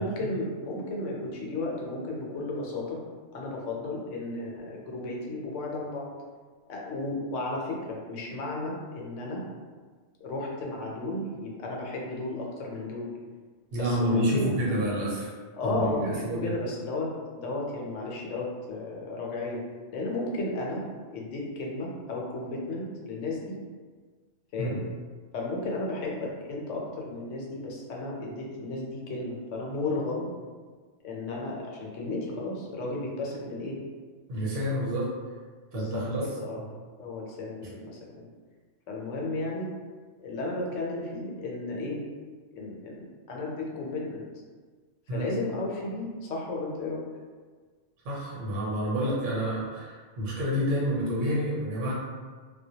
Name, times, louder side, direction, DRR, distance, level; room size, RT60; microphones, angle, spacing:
voice 1, 0.0-3.0 3.3-6.1 6.7-9.4 10.2-13.1 13.7-14.5 15.6-19.6 19.9-20.8 21.1-23.6 24.5-24.8 25.3-30.3 31.0-33.8 35.7-36.6 37.0-38.3 38.9-39.7 40.2-42.0 42.5-44.2 45.1-47.0, left 2 dB, 80° left, -2 dB, 0.9 m, -33 dB
voice 2, 13.7-15.3 15.6-16.5 24.6-24.8 34.3-35.1 35.7-36.3 36.6-36.7 37.6-37.7 45.1-45.3 48.0-51.9, equal, 85° right, -5 dB, 1.1 m, -29 dB
2.1 x 2.1 x 2.7 m, 1.5 s
omnidirectional pair, 1.2 m